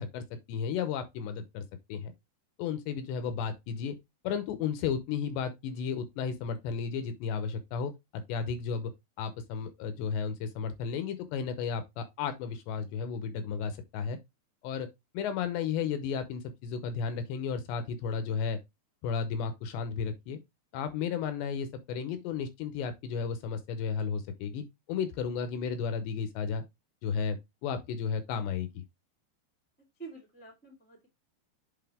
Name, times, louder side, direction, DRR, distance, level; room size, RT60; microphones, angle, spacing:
voice 1, 0.0-1.6 1.9-2.1 2.6-3.9 4.2-8.9 9.2-14.2 14.6-14.9 15.1-18.6 19.0-20.4 20.7-26.6 27.0-28.8, left 6 dB, 75° left, 2.8 m, -33 dB
voice 2, 30.0-31.1, right 4 dB, 10° left, 0.5 m, -47 dB
7.9 x 4.3 x 3.5 m
omnidirectional pair, 5.4 m